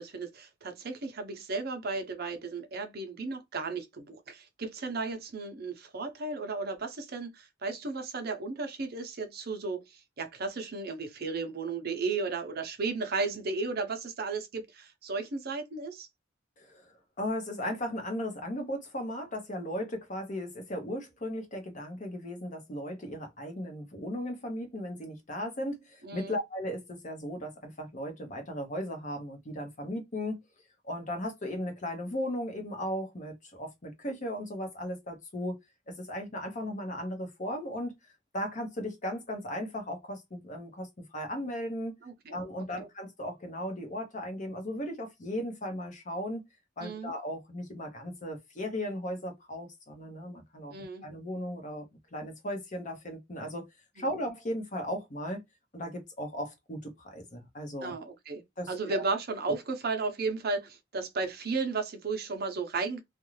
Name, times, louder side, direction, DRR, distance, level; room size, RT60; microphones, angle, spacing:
voice 1, 0.0-16.1 26.0-26.4 42.0-42.3 42.8-42.9 46.8-47.1 50.7-51.0 54.0-54.1 57.8-58.4 58.7-63.0, right 4 dB, 55° right, 0.6 m, -34 dB
voice 2, 16.6-30.4 30.8-35.6 35.9-38.0 38.3-42.0 42.3-46.4 46.8-50.8 51.0-51.9 52.1-53.6 54.0-55.4 55.7-57.9 58.6-59.0, equal, 40° left, 0.8 m, -36 dB
2.5 x 2.2 x 3.1 m
head